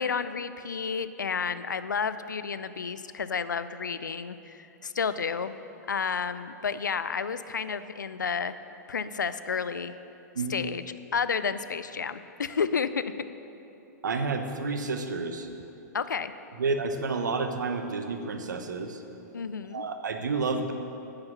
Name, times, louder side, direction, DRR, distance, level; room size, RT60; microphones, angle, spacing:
voice 1, 0.0-5.5 5.9-8.5 8.9-9.9 10.5-10.8 11.1-13.0 15.9-16.3 19.3-19.8, left 6 dB, 85° left, 13 dB, 0.5 m, -31 dB
voice 2, 14.0-15.5 16.6-19.0 19.7-20.7, right 4 dB, 75° right, 6 dB, 1.1 m, -30 dB
9.8 x 8.9 x 6.8 m, 2.9 s
hypercardioid pair, 110°, 10 cm